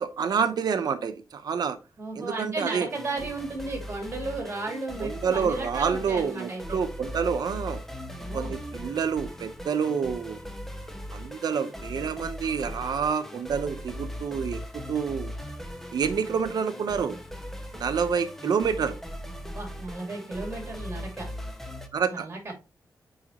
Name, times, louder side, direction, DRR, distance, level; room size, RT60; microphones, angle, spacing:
voice 1, 0.0-1.8 2.2-2.9 5.0-7.8 8.3-10.4 11.1-15.3 15.9-17.2 17.7-19.0 21.9-22.3, right 6 dB, 80° right, 9 dB, 0.8 m, -28 dB
voice 2, 2.0-6.8 8.1-8.5 19.3-21.3 22.1-22.5, right 2 dB, 35° right, 1 dB, 2.7 m, -35 dB
sound 1, 2.9-21.9, equal, 5° left, 0.8 m, -39 dB
6.4 x 5.0 x 2.9 m, 0.29 s
wide cardioid pair, 170°, 7 cm